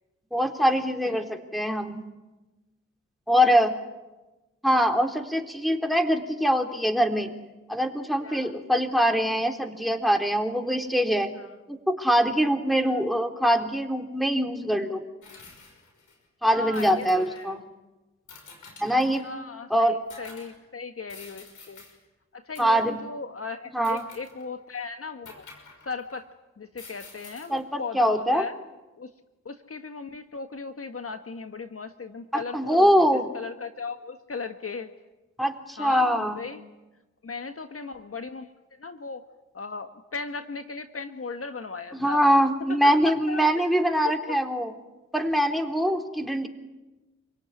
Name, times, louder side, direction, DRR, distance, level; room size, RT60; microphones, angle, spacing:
voice 1, 0.3-2.1 3.3-3.7 4.6-7.3 7.7-11.3 11.7-15.0 16.4-17.6 18.8-19.2 19.7-20.0 22.6-23.0 23.7-24.0 27.5-28.4 32.3-33.3 35.4-36.5 41.9-44.7 45.1-46.5, equal, ahead, 5 dB, 3.7 m, -23 dB
voice 2, 8.2-8.5 11.3-11.5 12.8-13.0 16.5-17.6 19.2-21.8 22.3-25.5 25.8-26.3 26.6-28.5 29.0-29.1 29.4-34.9 35.8-36.6 37.2-39.2 39.5-42.3 42.7-43.7 44.3-44.4 45.9-46.0, left 4 dB, 50° left, 8 dB, 1.5 m, -37 dB
sound 1, 15.2-16.2 16.5-17.5 18.3-19.4 20.1-20.6 21.1-21.9 22.5-23.0 23.8-24.6 25.3-26.2 26.7-27.6, left 3 dB, 80° left, 5.8 m, -48 dB
27.5 x 17.5 x 9.8 m, 1.1 s
cardioid pair, 45°, 30 cm